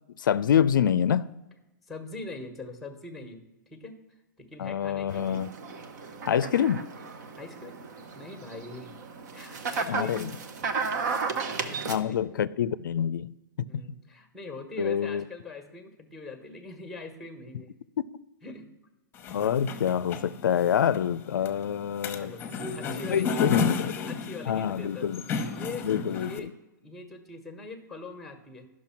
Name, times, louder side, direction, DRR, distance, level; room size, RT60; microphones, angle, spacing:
voice 1, 0.2-1.4 4.6-5.5 6.2-6.9 9.9-10.3 11.9-13.7 14.8-15.2 18.0-18.1 19.3-22.3 23.1-24.0 24.5-25.2 25.8-26.5, left 9 dB, 85° left, 0.4 m, -26 dB
voice 2, 1.9-3.4 3.7-5.4 7.4-7.8 8.1-9.0 9.3-10.3 11.6-12.2 13.7-17.7 18.4-18.7 22.2-22.5 22.7-23.4 24.1-26.5 26.8-28.7, left 3 dB, ahead, 1.3 m, -42 dB
sound 1, 5.1-12.0, right 5 dB, 60° right, 1.1 m, -34 dB
sound 2, 19.1-26.4, left 5 dB, 20° left, 1.0 m, -33 dB
10.5 x 6.3 x 5.8 m
hypercardioid pair, 140°, 10 cm